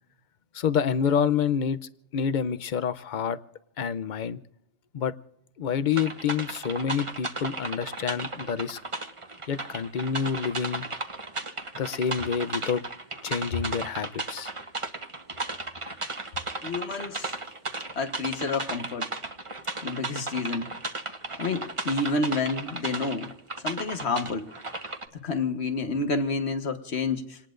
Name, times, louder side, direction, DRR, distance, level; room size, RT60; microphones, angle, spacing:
voice 1, 0.5-1.8 2.1-3.4 3.8-4.4 4.9-5.1 5.6-8.8 9.5-10.9 11.8-12.8 13.2-14.5, left 7 dB, 50° left, 0.7 m, -28 dB
sound 1, 5.9-25.1, right 2 dB, 30° right, 1.2 m, -35 dB
voice 2, 16.6-17.3 17.9-19.1 19.8-20.7 21.4-23.3 23.6-24.5 25.2-27.4, left 3 dB, 65° left, 1.6 m, -29 dB
28.0 x 19.0 x 2.5 m
omnidirectional pair, 1.2 m